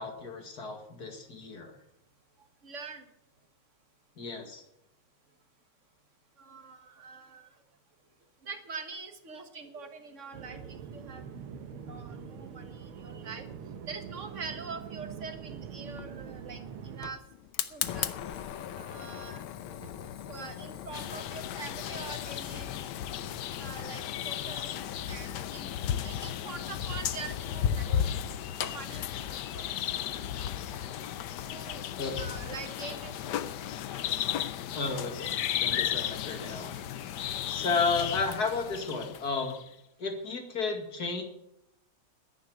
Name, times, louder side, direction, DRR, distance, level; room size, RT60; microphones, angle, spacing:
voice 1, 0.0-1.7 4.2-4.6 32.0-32.3 34.7-35.3 35.6-39.6 40.0-41.2, left 4 dB, 45° left, 4 dB, 2.6 m, -33 dB
voice 2, 2.6-3.0 6.4-7.5 8.4-13.4 13.9-17.2 17.7-18.1 18.8-19.4 19.8-20.0 20.3-22.8 23.6-24.7 25.0-25.7 26.0-28.2 28.6-29.6 29.9-30.0 30.3-30.4 30.9-31.0 31.4-31.8 32.1-33.4, right 4 dB, 40° right, 6 dB, 1.6 m, -44 dB
sound 1, 10.3-17.1, right 7 dB, 90° right, 1.9 m, -43 dB
Fire, 15.8-31.5, left 10 dB, 85° left, 1.7 m, -41 dB
sound 2, 20.9-39.7, left 10 dB, 65° left, 1.1 m, -34 dB
10.5 x 9.5 x 9.5 m, 0.82 s
omnidirectional pair, 2.3 m